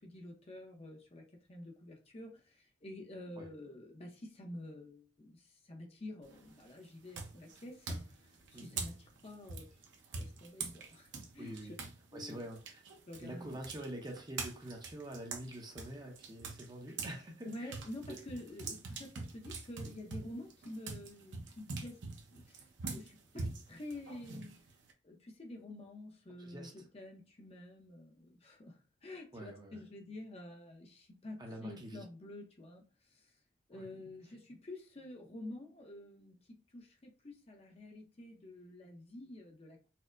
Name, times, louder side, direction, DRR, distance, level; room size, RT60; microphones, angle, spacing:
voice 1, 0.0-9.7 10.1-11.5 12.1-12.4 13.1-13.5 17.4-22.0 22.3-24.6 25.0-32.8 33.1-33.3 33.7-36.4 36.7-39.9, left 1 dB, 35° left, 0.7 m, -49 dB
sound 1, 6.2-6.6 7.1-12.0 12.3-17.2 17.5-24.9, right 4 dB, 90° right, 0.7 m, -44 dB
voice 2, 11.4-11.8 12.1-12.8 13.2-17.7 18.1-18.2 23.3-23.5 26.4-26.7 29.3-29.8 31.4-32.0 33.7-33.9, right 1 dB, 25° right, 0.6 m, -46 dB
4.3 x 2.0 x 2.5 m
head